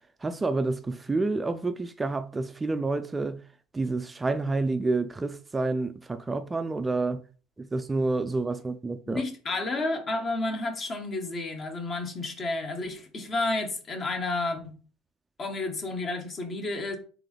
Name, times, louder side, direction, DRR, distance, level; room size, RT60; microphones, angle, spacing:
voice 1, 0.2-3.4 3.7-7.2 7.6-9.2, right 3 dB, 20° right, 0.3 m, -29 dB
voice 2, 9.1-14.8 15.4-17.0, left 2 dB, 35° left, 1.1 m, -31 dB
3.7 x 3.6 x 3.4 m
supercardioid pair, 95°, 0 cm